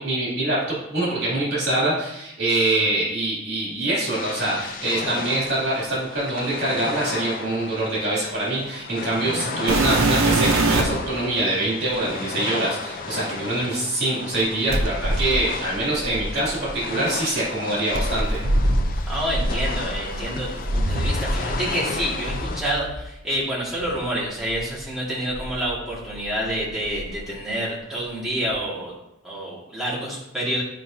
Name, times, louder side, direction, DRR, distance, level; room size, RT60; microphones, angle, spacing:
voice 1, 0.0-18.4, right 2 dB, 50° right, -7 dB, 2.8 m, -24 dB
sound 1, 4.1-22.6, left 4 dB, 40° left, 0.4 m, -34 dB
sound 2, 9.7-11.1 11.9-12.0 14.7-16.8 17.9-21.7 21.9-23.0 23.8-23.9 24.5-24.6 25.3-26.4 26.7-27.2 28.5-28.6, right 1 dB, 80° right, 0.9 m, -24 dB
voice 2, 19.1-28.9 29.2-30.6, right 1 dB, ahead, -8 dB, 2.0 m, -28 dB
10.5 x 4.9 x 2.8 m, 0.85 s
head